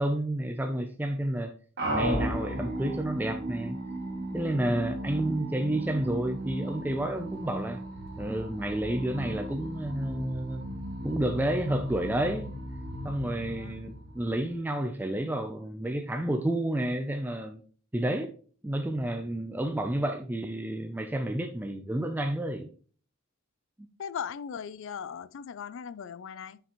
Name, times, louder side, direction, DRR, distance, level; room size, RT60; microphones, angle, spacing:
voice 1, 0.0-1.5 1.9-3.8 4.3-7.8 8.2-10.6 11.0-12.6 13.0-17.6 17.9-18.3 18.6-22.7, right 1 dB, 10° right, 0.4 m, -30 dB
sound 1, 1.8-14.6, right 1 dB, 55° right, 2.1 m, -36 dB
voice 2, 24.0-26.6, left 7 dB, 65° left, 0.4 m, -38 dB
6.8 x 5.9 x 3.0 m
head